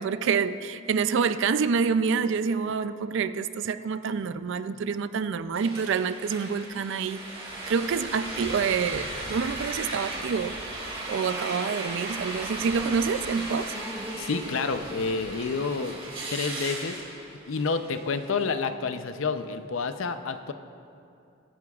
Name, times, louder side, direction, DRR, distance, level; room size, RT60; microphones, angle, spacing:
voice 1, 0.0-7.2 7.7-10.6 11.1-13.7, right 6 dB, 65° right, 13 dB, 0.4 m, -27 dB
sound 1, 5.5-18.4, right 2 dB, 30° right, 2.9 m, -36 dB
sound 2, 13.7-17.9 18.1-18.2 18.6-18.7, right 1 dB, 5° right, 0.8 m, -44 dB
voice 2, 14.2-16.0 16.3-17.0 17.5-20.5, left 4 dB, 70° left, 9 dB, 0.6 m, -29 dB
22.0 x 11.0 x 2.4 m, 2.5 s
head